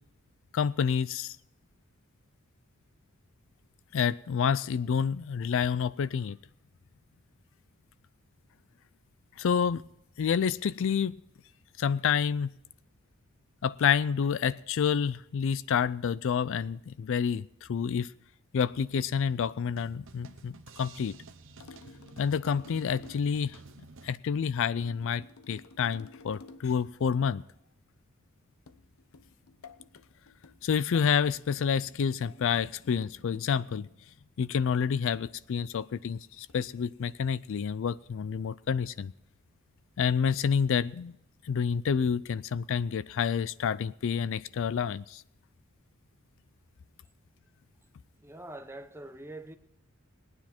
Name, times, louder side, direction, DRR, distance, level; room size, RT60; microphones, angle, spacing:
voice 1, 0.5-1.4 3.9-6.4 9.4-9.8 10.2-11.1 11.8-12.5 13.6-18.1 18.5-21.2 22.2-23.6 24.0-27.4 30.6-33.9 34.4-39.1 40.0-41.1 41.5-45.2, left 7 dB, 65° left, 0.4 m, -28 dB
sound 1, 18.7-24.2, right 3 dB, 65° right, 1.0 m, -52 dB
sound 2, 21.6-23.4 24.8-26.8 28.7-33.8 35.1-35.5 36.5-36.8, left 4 dB, 85° left, 0.8 m, -52 dB
voice 2, 48.2-49.6, right 1 dB, 10° right, 0.8 m, -44 dB
20.0 x 9.6 x 4.4 m
head